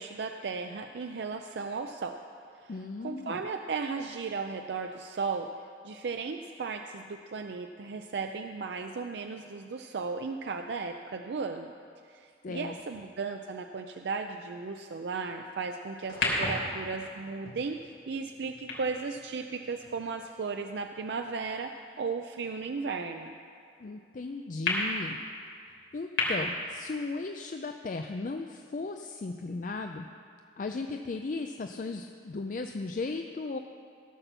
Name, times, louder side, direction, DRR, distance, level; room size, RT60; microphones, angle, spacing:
voice 1, 0.0-2.2 2.6-2.7 3.0-5.5 5.8-11.7 12.1-23.4, right 4 dB, 70° right, 5 dB, 0.4 m, -35 dB
voice 2, 2.7-3.4 12.4-12.8 23.8-25.2 25.9-30.1 30.6-33.6, left 3 dB, 45° left, 5 dB, 0.4 m, -36 dB
sound 1, 16.0-20.5 21.2-21.3 24.7-24.8 26.2-26.3, left 3 dB, 75° left, 3.2 m, -34 dB
16.5 x 5.9 x 6.8 m, 2.3 s
head